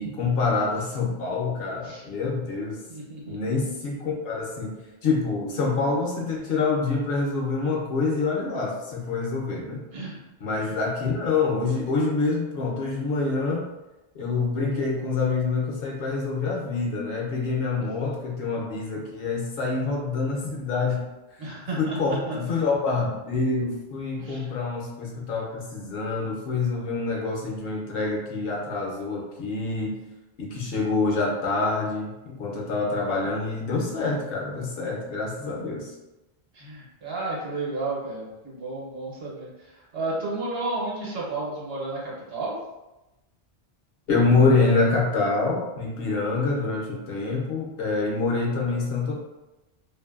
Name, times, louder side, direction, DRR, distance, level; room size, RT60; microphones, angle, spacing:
voice 1, 0.0-2.8 3.3-4.7 5.0-9.8 10.4-13.7 14.1-21.0 21.8-30.0 30.4-35.9 44.1-49.1, left 3 dB, 65° left, -1 dB, 0.8 m, -26 dB
voice 2, 2.9-3.7 9.9-10.2 10.6-10.8 21.4-22.4 24.2-24.5 36.5-42.5, right 2 dB, 70° right, -5 dB, 1.0 m, -32 dB
2.5 x 2.5 x 2.3 m, 1.0 s
omnidirectional pair, 1.1 m